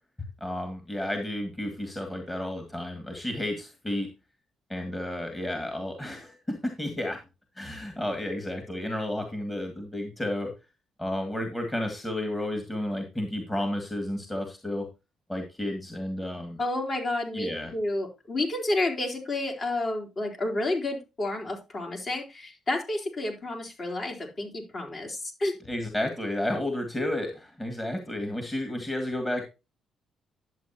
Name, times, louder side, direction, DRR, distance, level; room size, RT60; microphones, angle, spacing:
voice 1, 0.4-4.1 4.7-7.2 7.6-10.5 11.0-14.9 15.3-16.6 17.3-17.7 25.7-29.4, left 1 dB, 15° left, 4 dB, 2.2 m, -32 dB
voice 2, 16.6-25.5, left 2 dB, 45° left, 2 dB, 3.8 m, -30 dB
11.0 x 7.7 x 2.9 m, 0.27 s
cardioid pair, 90°, 0 cm